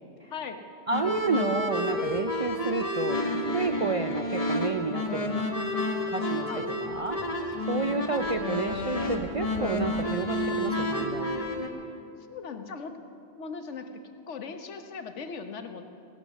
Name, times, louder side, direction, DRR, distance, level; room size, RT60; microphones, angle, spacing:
voice 1, 0.3-0.7 3.8-4.0 6.5-6.7 7.7-8.1 12.3-13.0 13.3-15.8, left 5 dB, 85° left, 7 dB, 1.3 m, -39 dB
sound 1, 0.9-11.7, left 1 dB, 30° left, 1.3 m, -30 dB
voice 2, 0.9-5.5 6.1-7.3 7.6-11.4, right 4 dB, 50° right, 7 dB, 0.4 m, -31 dB
17.5 x 11.0 x 7.4 m, 2.5 s
omnidirectional pair, 1.2 m